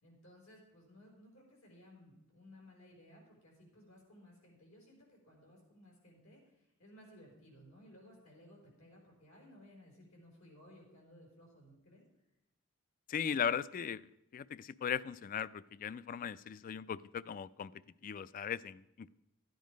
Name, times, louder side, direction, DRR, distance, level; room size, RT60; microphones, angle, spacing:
voice 1, 0.0-12.0, left 1 dB, 85° left, -1 dB, 4.9 m, -59 dB
voice 2, 13.1-14.1 14.3-17.7 18.0-19.1, left 7 dB, 40° left, 18 dB, 0.3 m, -38 dB
13.0 x 9.3 x 5.2 m, 0.87 s
head